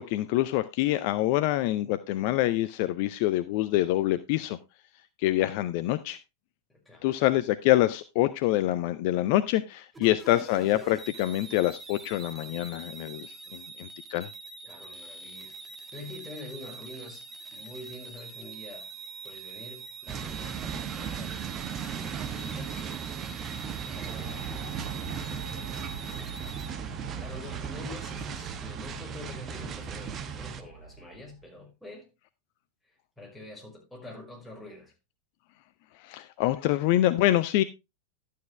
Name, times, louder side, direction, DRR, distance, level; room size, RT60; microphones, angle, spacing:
voice 1, 0.0-4.6 5.2-6.2 7.0-14.3 36.0-37.6, left 15 dB, 45° left, 0.5 m, -26 dB
sound 1, 9.9-26.7, right 4 dB, 15° right, 1.3 m, -44 dB
voice 2, 14.6-15.6 15.9-18.9 19.2-22.8 23.9-24.7 25.3-26.0 26.9-32.1 32.9-34.9, left 2 dB, 5° left, 5.4 m, -46 dB
sound 2, 20.1-30.6, right 7 dB, 30° right, 1.0 m, -37 dB
sound 3, 23.7-31.5, right 5 dB, 75° right, 1.2 m, -45 dB
11.5 x 8.4 x 3.2 m
figure-of-eight pair, 90°, 0 cm